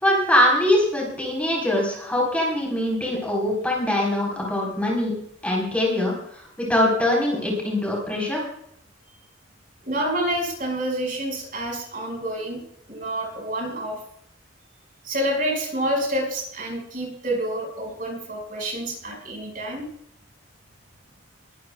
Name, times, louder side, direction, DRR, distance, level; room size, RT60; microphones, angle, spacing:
voice 1, 0.0-5.1 5.4-6.1 6.6-8.5, left 1 dB, 5° left, -3 dB, 4.2 m, -22 dB
voice 2, 9.8-12.6 12.9-14.0 15.0-19.9, right 1 dB, 45° right, 1 dB, 5.5 m, -28 dB
22.0 x 13.5 x 2.3 m, 0.69 s
head